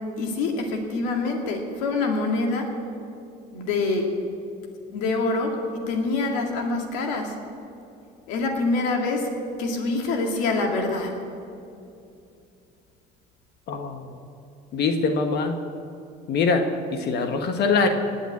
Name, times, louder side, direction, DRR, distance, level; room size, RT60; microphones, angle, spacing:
voice 1, 0.2-2.7 3.5-4.1 4.9-5.6 5.9-7.3 8.3-9.3 9.6-11.1, left 3 dB, 90° left, 3 dB, 2.2 m, -25 dB
voice 2, 13.7-14.2 14.7-15.5 16.3-16.6 16.9-17.9, left 4 dB, 65° left, 5 dB, 1.4 m, -23 dB
19.5 x 7.2 x 8.5 m, 2.6 s
supercardioid pair, 90°, 18 cm